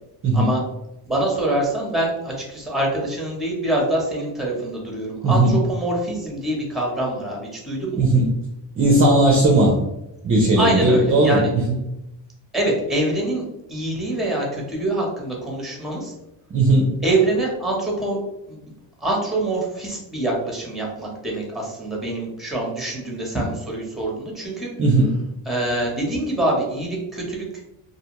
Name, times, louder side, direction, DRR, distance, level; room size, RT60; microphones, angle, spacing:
voice 1, 1.0-8.0 10.6-11.5 12.5-16.1 17.0-18.2 18.5-18.6 19.0-24.7 25.4-27.5, right 1 dB, ahead, -1 dB, 0.9 m, -25 dB
voice 2, 5.2-5.5 8.0-8.3 8.8-9.8 10.2-11.8 16.5-16.9 24.8-25.1, right 2 dB, 30° right, -2 dB, 0.5 m, -17 dB
2.6 x 2.1 x 2.9 m, 0.91 s
cardioid pair, 100°, 46 cm